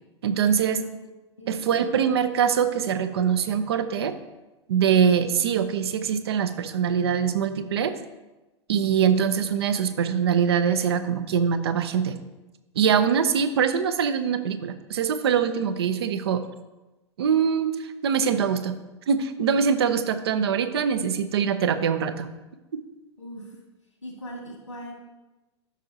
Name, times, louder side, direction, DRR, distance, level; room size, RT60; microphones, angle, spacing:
voice 1, 0.2-0.8 1.5-4.1 4.7-7.9 8.7-12.2 12.7-16.4 17.2-18.7 19.1-22.3, right 7 dB, 60° right, 10 dB, 0.7 m, -23 dB
voice 2, 0.7-1.1 1.4-1.6 23.2-23.5 24.0-24.9, equal, 85° left, -1 dB, 2.0 m, -40 dB
12.0 x 5.5 x 2.8 m, 1.1 s
figure-of-eight pair, 95°, 15 cm